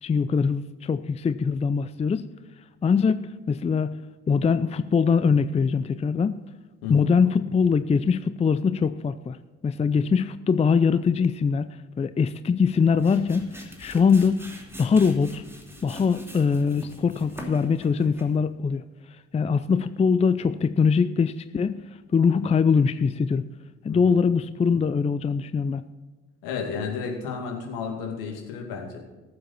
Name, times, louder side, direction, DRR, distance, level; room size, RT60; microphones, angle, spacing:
voice 1, 0.0-2.2 2.8-3.9 4.3-6.4 6.9-9.4 9.6-11.7 12.0-14.5 14.8-15.4 15.8-18.8 19.3-21.8 22.1-23.5 23.8-25.8, left 5 dB, 20° left, 13 dB, 0.5 m, -22 dB
sound 1, 12.6-18.4, equal, 5° right, 2.8 m, -43 dB
voice 2, 26.4-29.0, left 5 dB, 70° left, 1 dB, 2.3 m, -32 dB
18.5 x 7.6 x 4.2 m, 1.2 s
figure-of-eight pair, 45°, 35 cm